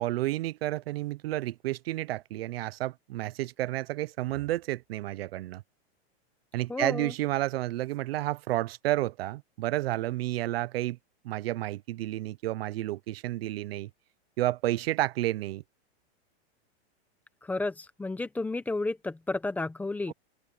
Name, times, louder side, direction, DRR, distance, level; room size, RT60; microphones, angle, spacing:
voice 1, 0.0-5.6 6.5-11.0 11.2-13.9 14.4-15.6 20.1-20.2, right 16 dB, 65° right, 0.7 m, -31 dB
voice 2, 6.7-7.1 17.4-20.1, left 2 dB, 5° left, 1.0 m, -32 dB
open air
supercardioid pair, 165°, 32 cm